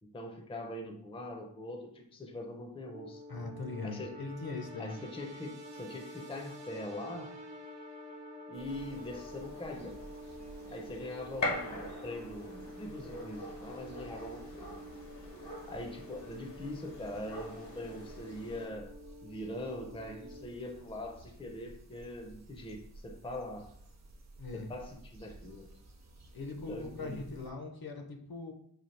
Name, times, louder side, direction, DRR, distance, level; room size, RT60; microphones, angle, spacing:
voice 1, 0.0-3.2 3.8-4.2 4.8-7.3 8.5-10.0 10.7-14.8 15.7-18.9 19.2-23.7 24.5-25.7 26.7-27.2, left 1 dB, 15° left, 3 dB, 0.5 m, -42 dB
sound 1, 2.8-20.4, equal, 85° right, 0.7 m, -49 dB
voice 2, 3.3-5.0 24.4-24.7 26.3-28.5, left 3 dB, 60° left, 3 dB, 0.6 m, -40 dB
sound 2, 8.5-27.5, right 2 dB, 40° right, 0.6 m, -54 dB
Gunshot gunfire, 8.7-18.6, left 2 dB, 80° left, 1.1 m, -43 dB
4.1 x 2.3 x 3.2 m, 0.69 s
wide cardioid pair, 55°, 42 cm